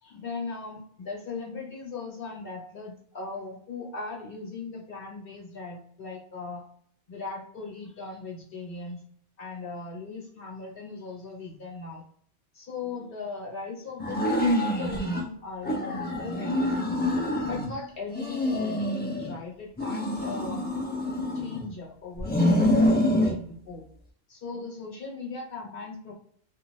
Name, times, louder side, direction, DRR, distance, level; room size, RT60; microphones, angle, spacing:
voice 1, 0.0-6.6 7.1-9.0 9.4-12.0 12.5-17.0 17.4-20.7 21.3-23.8 24.3-26.1, left 4 dB, 55° left, -2 dB, 1.2 m, -38 dB
sound 1, 14.0-15.2 15.6-17.7 18.1-19.3 19.8-21.7 22.2-23.4, left 1 dB, 15° left, 0.4 m, -26 dB
2.6 x 2.5 x 3.1 m, 0.63 s
omnidirectional pair, 1.2 m